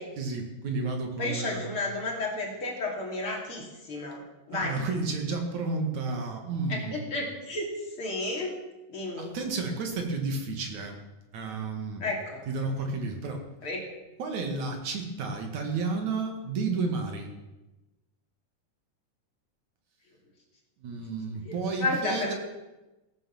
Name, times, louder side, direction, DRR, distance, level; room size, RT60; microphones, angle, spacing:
voice 1, 0.2-1.7 4.5-7.1 9.2-11.0 11.3-12.0 12.5-13.4 14.2-17.3 20.8-22.3, right 3 dB, 50° right, 4 dB, 2.7 m, -31 dB
voice 2, 1.2-4.8 6.7-7.7 8.0-8.6 8.9-9.3 12.0-12.4 13.6-13.8 21.4-22.3, left 2 dB, 35° left, -1 dB, 3.1 m, -32 dB
17.0 x 9.2 x 7.2 m, 1.0 s
omnidirectional pair, 4.9 m